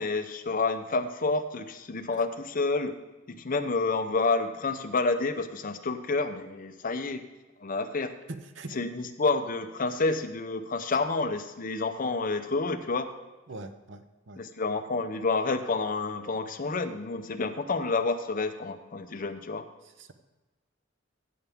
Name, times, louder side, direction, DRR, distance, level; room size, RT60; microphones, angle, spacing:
voice 1, 0.0-3.0 3.3-7.2 7.6-8.1 8.7-13.1 14.4-19.7, left 3 dB, 45° left, 8 dB, 0.7 m, -29 dB
voice 2, 8.3-8.8 13.5-14.4 20.0-20.1, right 2 dB, 65° right, 9 dB, 0.8 m, -42 dB
16.0 x 7.0 x 3.6 m, 1.2 s
head